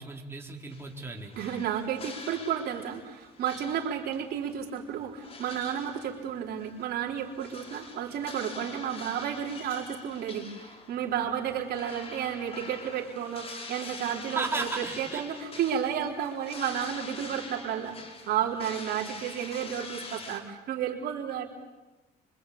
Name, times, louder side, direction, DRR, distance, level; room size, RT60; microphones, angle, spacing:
voice 1, 0.0-1.3 14.3-15.2, right 3 dB, 15° right, 0 dB, 4.3 m, -35 dB
sound 1, 0.7-20.4, left 3 dB, 35° left, 4.8 m, -45 dB
voice 2, 1.4-18.0 18.2-21.5, right 9 dB, 70° right, 0 dB, 4.0 m, -32 dB
25.5 x 25.0 x 8.6 m, 1.1 s
cardioid pair, 110°, 17 cm